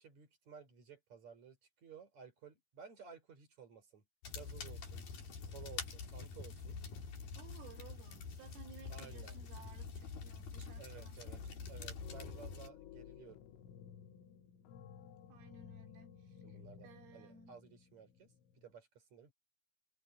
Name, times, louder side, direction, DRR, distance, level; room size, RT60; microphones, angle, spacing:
voice 1, 0.0-4.0 4.3-5.0 5.5-6.8 8.9-9.4 10.8-11.4 11.7-13.4 16.4-19.3, right 7 dB, 35° right, 5.4 m, -56 dB
sound 1, 4.2-12.7, left 5 dB, 50° left, 5.0 m, -46 dB
voice 2, 7.4-11.7 15.3-17.6, right 7 dB, 75° right, 5.5 m, -59 dB
sound 2, 11.3-11.7 12.0-18.7, left 8 dB, 80° left, 3.9 m, -56 dB
omnidirectional pair, 5.8 m